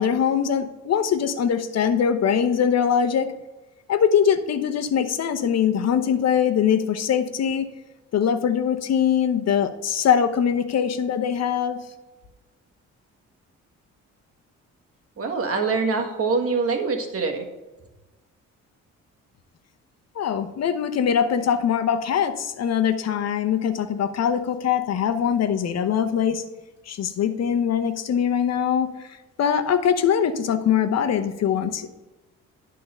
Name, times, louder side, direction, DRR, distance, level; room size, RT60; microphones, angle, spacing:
voice 1, 0.0-3.3 3.9-7.7 8.1-11.8 20.1-26.4 26.9-31.9, left 8 dB, 60° left, 9 dB, 0.9 m, -22 dB
voice 2, 15.2-17.5, right 4 dB, 50° right, 4 dB, 1.6 m, -24 dB
11.0 x 3.8 x 5.5 m, 1.1 s
cardioid pair, 90°, 30 cm